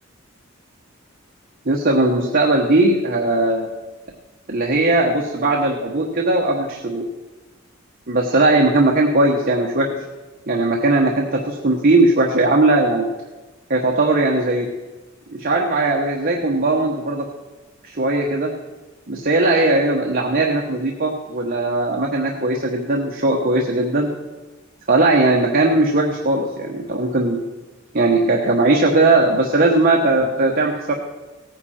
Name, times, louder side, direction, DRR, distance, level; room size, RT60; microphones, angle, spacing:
voice 1, 1.6-3.7 4.5-7.1 8.1-10.0 10.5-13.1 13.7-14.7 15.3-17.2 17.8-18.5 19.1-24.1 24.9-27.4 27.9-30.9, right 2 dB, 45° right, 0 dB, 1.3 m, -18 dB
17.0 x 9.7 x 4.4 m, 1.2 s
head